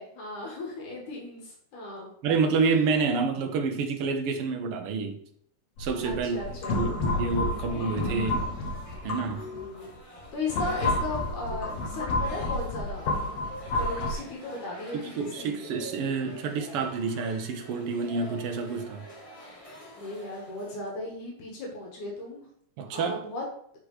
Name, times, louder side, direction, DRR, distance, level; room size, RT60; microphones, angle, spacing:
voice 1, 0.0-2.1 6.0-6.8 9.4-9.9 10.3-13.1 13.7-15.6 20.0-22.5 22.9-23.4, left 2 dB, 80° left, 3.0 m, -36 dB
voice 2, 2.2-5.2 5.8-8.5 9.0-9.5 14.9-19.0 22.8-23.2, right 4 dB, 65° right, 1.5 m, -28 dB
sound 1, 5.8-9.7 10.2-14.1, left 2 dB, 65° left, 2.3 m, -30 dB
sound 2, 6.3-20.8, equal, 20° left, 0.8 m, -46 dB
6.7 x 5.7 x 4.8 m
omnidirectional pair, 3.5 m